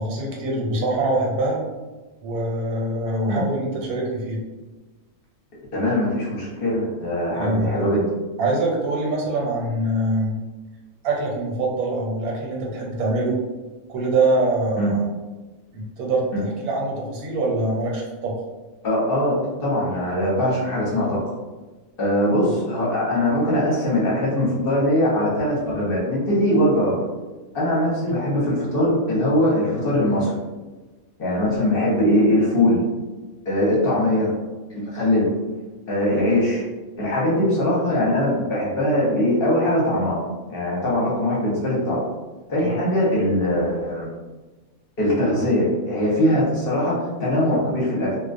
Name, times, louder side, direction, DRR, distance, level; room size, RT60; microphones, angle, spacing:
voice 1, 0.0-1.6 2.2-4.4 7.4-7.7 8.4-10.4 11.0-13.4 13.9-15.0 15.7-18.4 42.6-42.7, right 2 dB, 75° right, -2 dB, 1.1 m, -24 dB
voice 2, 5.7-8.0 14.8-14.9 16.3-16.4 18.8-21.2 22.0-27.0 27.5-30.4 31.2-32.8 33.5-34.3 34.7-35.3 35.9-36.6 37.0-42.0 42.5-44.1 45.0-48.2, left 1 dB, 45° left, -6 dB, 0.8 m, -21 dB
2.3 x 2.2 x 2.5 m, 1.2 s
omnidirectional pair, 1.5 m